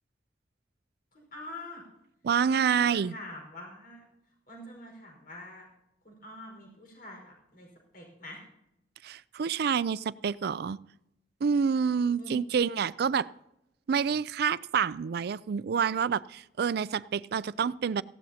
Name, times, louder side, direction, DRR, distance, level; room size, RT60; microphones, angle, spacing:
voice 1, 1.1-1.8 2.5-4.0 4.5-5.7 6.0-7.7 7.9-8.4 12.2-12.4, left 1 dB, 55° left, 1 dB, 4.9 m, -45 dB
voice 2, 2.2-3.2 9.0-10.8 11.4-13.3 13.9-18.0, right 6 dB, 60° right, 19 dB, 0.4 m, -28 dB
18.0 x 15.5 x 2.8 m, 0.86 s
head